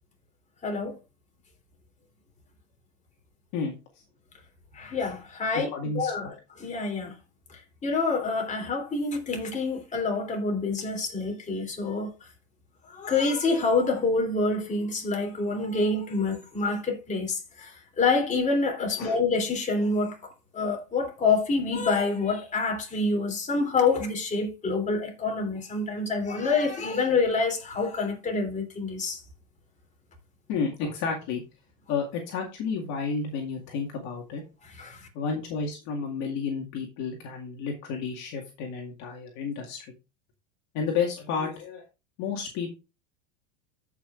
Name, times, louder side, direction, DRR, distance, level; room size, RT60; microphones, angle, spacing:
voice 1, 0.6-1.0 4.7-5.7 5.9-7.1 7.5-12.1 12.9-29.2 34.7-35.1, left 3 dB, 20° left, 3.2 m, -27 dB
voice 2, 5.7-6.3 19.0-19.2 30.5-31.4 31.9-34.4 35.1-39.9 40.7-41.8 42.2-42.7, left 5 dB, 55° left, 2.1 m, -31 dB
14.5 x 5.8 x 2.5 m
supercardioid pair, 120°, 35 cm